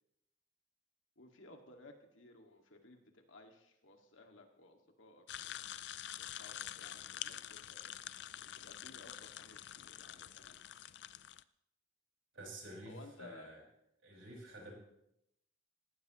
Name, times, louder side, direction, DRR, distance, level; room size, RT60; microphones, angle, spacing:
voice 1, 1.2-5.6 6.2-7.9 8.4-10.6 12.8-13.5, left 2 dB, 75° left, 3 dB, 2.1 m, -58 dB
sound 1, 5.3-11.4, left 11 dB, 60° left, 0.4 m, -47 dB
voice 2, 12.3-13.6 14.0-14.7, right 1 dB, 75° right, -1 dB, 5.6 m, -50 dB
19.0 x 15.0 x 3.1 m, 0.81 s
head